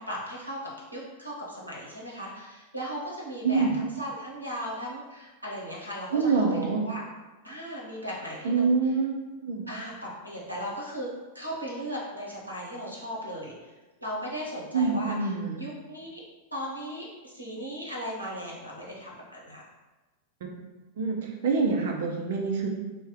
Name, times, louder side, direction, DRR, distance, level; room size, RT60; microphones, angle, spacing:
voice 1, 0.0-7.0 7.4-8.7 9.7-11.1 11.3-13.5 14.0-16.2 16.5-19.6, equal, 90° right, -4 dB, 0.8 m, -37 dB
voice 2, 6.1-6.8 8.4-9.7 14.7-15.6 21.0-22.7, right 4 dB, 55° right, 1 dB, 0.5 m, -26 dB
2.7 x 2.2 x 3.7 m, 1.2 s
figure-of-eight pair, 90°, 0 cm